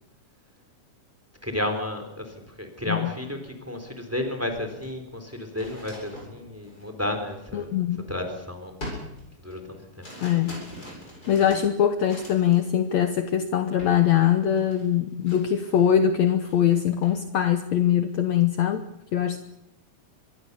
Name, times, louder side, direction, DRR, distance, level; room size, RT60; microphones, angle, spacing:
voice 1, 1.4-7.7 8.1-8.7 9.4-10.1, left 1 dB, 5° right, 6 dB, 3.8 m, -32 dB
sound 1, 4.8-8.3 8.8-12.7 13.0-13.3 13.8-14.1 14.3-16.0 16.3-17.2, left 1 dB, 25° left, 8.6 m, -43 dB
voice 2, 7.5-8.0 10.2-10.6 11.3-18.8 19.1-19.4, left 9 dB, 65° left, 8 dB, 2.1 m, -22 dB
24.5 x 21.5 x 7.0 m, 0.82 s
omnidirectional pair, 3.7 m